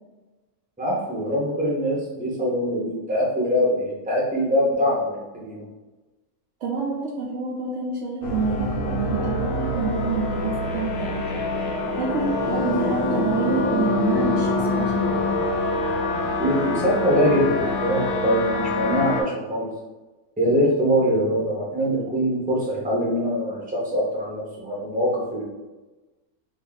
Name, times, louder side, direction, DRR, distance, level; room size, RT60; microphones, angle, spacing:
voice 1, 0.8-5.6 16.4-19.7 20.4-25.4, equal, 10° right, -5 dB, 0.5 m, -23 dB
voice 2, 6.6-15.1, right 4 dB, 65° right, -3 dB, 0.7 m, -27 dB
sound 1, 8.2-19.2, left 2 dB, 65° left, 0.6 m, -25 dB
2.8 x 2.6 x 3.9 m, 1.2 s
omnidirectional pair, 1.6 m